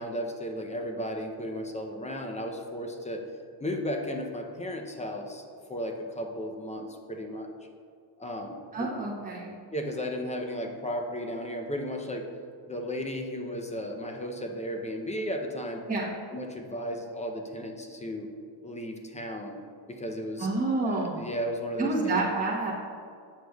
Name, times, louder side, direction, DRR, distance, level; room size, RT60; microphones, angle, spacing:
voice 1, 0.0-3.2 3.6-7.5 8.2-8.9 9.7-12.3 12.7-15.8 16.3-18.3 18.6-19.6 19.9-20.5 20.8-22.2, equal, 15° left, 3 dB, 0.5 m, -34 dB
voice 2, 8.7-9.6 15.9-16.2 20.4-21.3 21.8-22.7, right 2 dB, 15° right, -6 dB, 1.1 m, -29 dB
8.0 x 6.1 x 2.3 m, 2.3 s
cardioid pair, 110°, 49 cm